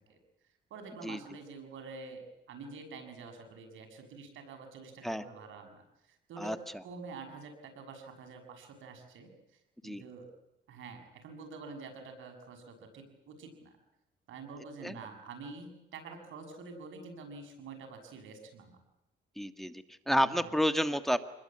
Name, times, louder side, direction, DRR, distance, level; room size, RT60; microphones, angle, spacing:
voice 1, 0.7-6.6 6.8-9.3 9.8-10.3 10.7-13.7 14.3-18.8 20.4-20.5, right 4 dB, 80° right, 5 dB, 6.8 m, -47 dB
voice 2, 19.4-21.2, equal, ahead, 10 dB, 1.6 m, -30 dB
26.5 x 21.0 x 8.7 m, 0.87 s
cardioid pair, 90°, 20 cm